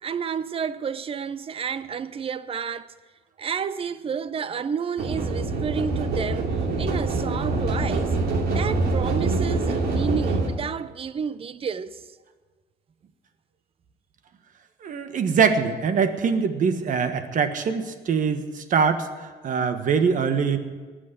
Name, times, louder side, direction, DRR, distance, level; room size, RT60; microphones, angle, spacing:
voice 1, 0.0-2.9 3.4-6.5 6.8-8.2 8.5-12.0, right 6 dB, 35° right, 0.7 m, -30 dB
sound 1, 5.0-10.5, right 3 dB, 70° right, 2.8 m, -25 dB
voice 2, 14.8-20.6, right 6 dB, 50° right, 1.4 m, -23 dB
19.0 x 6.5 x 9.9 m
cardioid pair, 110°, 17 cm